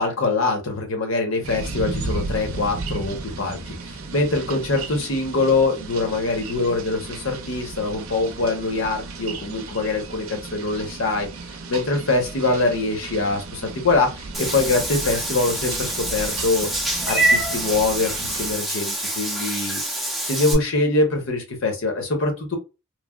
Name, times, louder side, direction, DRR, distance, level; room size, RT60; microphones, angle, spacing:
voice 1, 0.0-11.3 11.7-16.7 17.1-19.8 20.2-22.6, left 3 dB, 70° left, 3 dB, 0.9 m, -23 dB
sound 1, 1.4-18.6, right 3 dB, 75° right, 0.6 m, -35 dB
Meow / Water / Bathtub (filling or washing), 14.3-20.5, right 1 dB, ahead, 0.6 m, -26 dB
3.2 x 2.0 x 2.3 m, 0.27 s
head